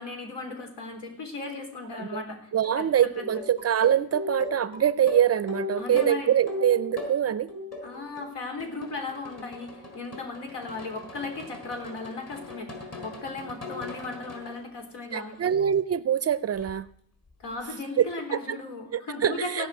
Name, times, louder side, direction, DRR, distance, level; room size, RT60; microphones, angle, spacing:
voice 1, 0.0-2.5 2.8-3.4 5.8-6.3 7.8-12.7 13.0-15.4 17.4-19.7, left 3 dB, 75° left, 4 dB, 3.6 m, -36 dB
sound 1, 2.5-2.7 3.1-7.2 7.5-8.3 8.6-14.6 15.1-15.5 16.6-16.7, left 3 dB, 35° left, 4.5 m, -38 dB
voice 2, 2.5-7.5 15.1-16.9 18.0-18.1 18.3-18.6 18.9-19.7, right 9 dB, 35° right, 16 dB, 0.5 m, -24 dB
17.0 x 5.8 x 9.3 m, 0.65 s
cardioid pair, 130°, 42 cm